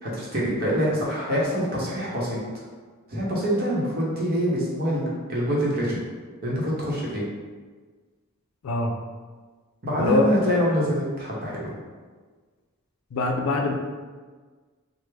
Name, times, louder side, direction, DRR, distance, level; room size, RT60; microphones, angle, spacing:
voice 1, 0.0-2.4 3.1-6.0 6.4-7.2 9.8-11.7, equal, 45° right, -5 dB, 0.8 m, -25 dB
voice 2, 13.1-13.7, left 2 dB, 80° left, 3 dB, 0.4 m, -23 dB
3.3 x 2.0 x 3.2 m, 1.4 s
head